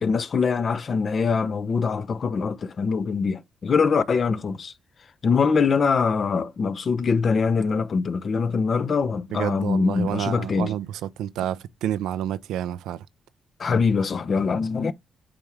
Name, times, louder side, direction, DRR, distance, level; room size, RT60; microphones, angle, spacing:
voice 1, 0.0-4.7 5.2-10.7 13.6-14.9, left 5 dB, 50° left, 0.7 m, -23 dB
voice 2, 9.3-13.1, right 11 dB, 90° right, 0.4 m, -29 dB
8.7 x 3.6 x 3.1 m
cardioid pair, 70°, 0 cm